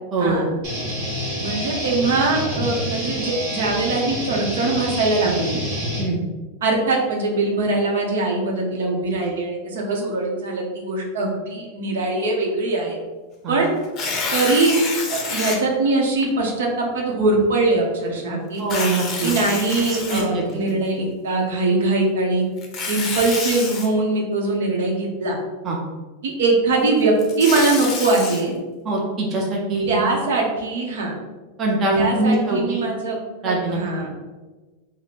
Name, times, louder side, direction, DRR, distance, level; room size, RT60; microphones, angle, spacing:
voice 1, 0.1-0.5 6.0-6.2 13.4-13.6 18.6-19.3 19.9-20.6 25.6-25.8 28.8-30.0 31.6-32.8 33.4-33.8, right 2 dB, 25° right, -2 dB, 0.6 m, -23 dB
sound 1, 0.6-6.0, equal, 45° right, 1.3 m, -28 dB
voice 2, 1.4-5.6 6.6-13.0 13.5-13.7 14.3-14.8 15.1-18.6 19.2-22.4 22.9-25.4 26.2-28.5 29.9-31.1 31.9-33.2 33.4-34.1, right 3 dB, 80° right, 0 dB, 0.8 m, -22 dB
Tearing, 13.8-15.6 16.2-16.3 18.6-20.7 22.6-23.9 27.0-28.4, left 4 dB, 25° left, 0.6 m, -28 dB
3.1 x 2.1 x 4.1 m, 1.3 s
supercardioid pair, 155°, 0 cm